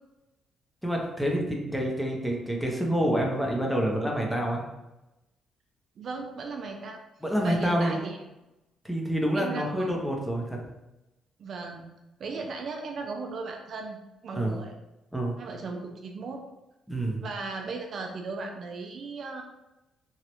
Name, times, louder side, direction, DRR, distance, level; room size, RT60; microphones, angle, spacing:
voice 1, 0.8-4.7 7.2-8.0 8.8-10.6 14.3-14.6 15.1-15.3 16.9-17.2, equal, ahead, -1 dB, 0.7 m, -27 dB
voice 2, 6.0-7.0 7.4-8.2 9.3-9.9 11.4-11.9 12.2-14.0 14.2-14.7 15.4-16.4 17.2-19.4, right 3 dB, 60° right, 3 dB, 0.4 m, -36 dB
3.1 x 2.4 x 2.9 m, 0.95 s
cardioid pair, 90°, 0 cm